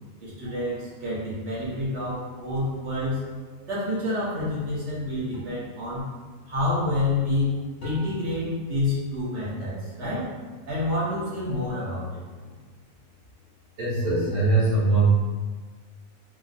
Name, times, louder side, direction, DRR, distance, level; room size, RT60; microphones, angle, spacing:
voice 1, 0.2-3.2 3.7-6.0 6.4-10.3 10.7-12.2, left 2 dB, 55° right, -10 dB, 1.5 m, -28 dB
sound 1, 5.3-5.7 7.8-8.4 10.0-10.4 12.4-12.9, left 2 dB, 75° left, 1.3 m, -40 dB
voice 2, 13.8-15.1, right 3 dB, 75° right, -9 dB, 1.8 m, -22 dB
3.5 x 2.7 x 2.5 m, 1.4 s
omnidirectional pair, 1.5 m